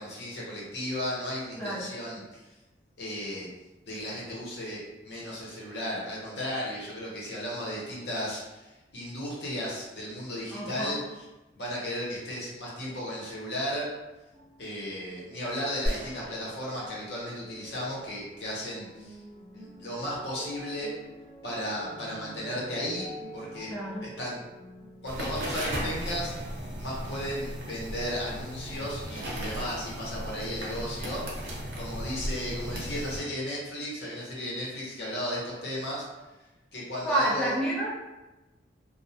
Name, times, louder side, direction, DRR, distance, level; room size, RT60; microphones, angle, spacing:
voice 1, 0.0-2.4 3.0-3.5 3.9-11.2 11.6-13.9 14.6-19.2 19.5-20.9 21.4-23.7 24.2-24.4 25.0-36.1 36.7-37.6, equal, 65° left, -5 dB, 0.8 m, -35 dB
voice 2, 1.6-1.9 10.5-11.0 23.7-24.2 37.0-37.9, right 1 dB, 5° left, -8 dB, 0.4 m, -29 dB
sound 1, 14.3-27.8 28.1-29.0 29.7-29.8, right 1 dB, 30° right, 0.7 m, -48 dB
sound 2, 15.9-18.1, equal, 30° left, 1.0 m, -37 dB
sound 3, 25.1-33.2, equal, 75° right, 0.6 m, -36 dB
2.5 x 2.0 x 2.7 m, 1.1 s
head